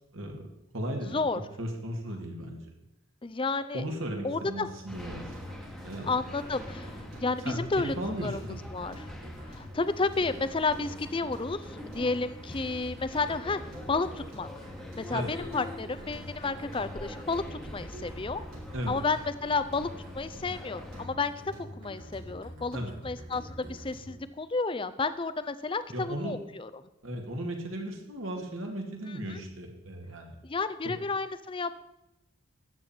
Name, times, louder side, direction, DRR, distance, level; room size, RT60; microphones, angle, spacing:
voice 1, 0.1-0.5 0.7-1.2 1.6-2.6 3.7-5.3 5.8-6.2 7.2-8.6 15.1-15.3 18.7-19.0 22.7-22.9 25.9-26.3 27.0-30.4, right 1 dB, 65° right, 2 dB, 2.1 m, -36 dB
voice 2, 3.2-3.8 4.2-4.7 6.1-9.1 9.5-13.6 13.9-14.5 14.9-18.4 18.9-19.9 20.1-21.3 21.8-22.8 23.0-26.7 29.3-29.4 30.4-31.8, left 3 dB, 25° left, 13 dB, 0.5 m, -31 dB
sound 1, 4.9-21.1, left 1 dB, ahead, 1.2 m, -45 dB
sound 2, 5.0-24.2, equal, 90° right, 4.7 m, -45 dB
13.0 x 9.0 x 4.4 m, 0.91 s
head